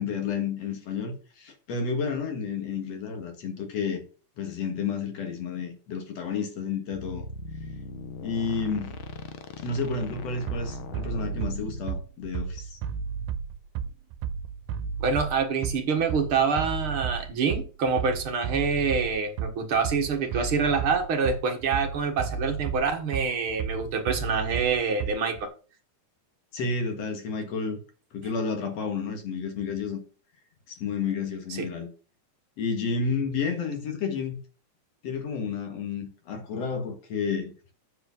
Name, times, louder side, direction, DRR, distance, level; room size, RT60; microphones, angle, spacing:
voice 1, 0.0-4.0 4.4-7.3 8.2-9.0 9.6-12.8 26.5-27.8 28.1-30.0 30.7-31.9 32.6-34.4 35.0-37.5, left 5 dB, 60° left, 2.6 m, -31 dB
sound 1, 6.9-12.0, left 2 dB, 90° left, 1.1 m, -39 dB
Bass drum, 10.5-25.5, right 7 dB, 85° right, 2.1 m, -33 dB
voice 2, 15.0-25.5 31.6-31.7, right 5 dB, 55° right, 1.8 m, -26 dB
8.2 x 4.9 x 5.9 m
omnidirectional pair, 3.6 m